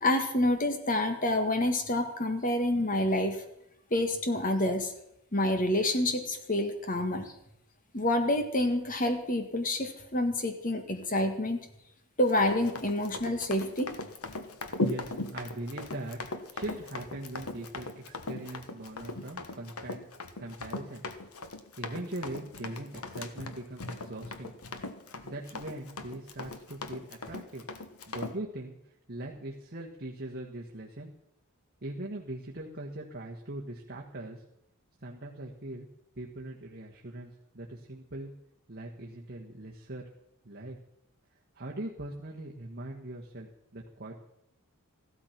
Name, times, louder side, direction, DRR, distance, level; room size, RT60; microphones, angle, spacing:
voice 1, 0.0-3.4 3.9-4.9 5.3-7.3 7.9-11.6 12.2-13.9, left 1 dB, 35° left, 7 dB, 1.8 m, -28 dB
Run, 12.3-28.4, left 2 dB, 75° left, 1.3 m, -39 dB
voice 2, 14.5-16.2 16.5-20.1 20.4-21.0 21.8-24.5 25.2-27.6 28.1-31.1 31.8-34.4 35.0-35.9 36.1-38.3 38.7-40.0 40.4-40.8 41.5-44.3, right 1 dB, 45° right, -1 dB, 1.5 m, -41 dB
15.0 x 12.5 x 5.9 m, 0.79 s
head